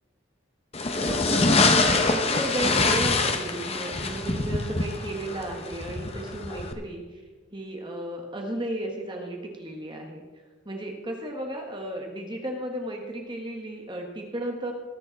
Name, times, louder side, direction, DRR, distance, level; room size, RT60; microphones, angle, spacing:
sound 1, 0.7-6.7, left 3 dB, 30° left, 0.9 m, -25 dB
voice 1, 0.9-7.2 7.5-10.2 10.6-14.7, right 1 dB, 20° right, 1 dB, 1.4 m, -34 dB
20.5 x 7.0 x 4.0 m, 1.4 s
head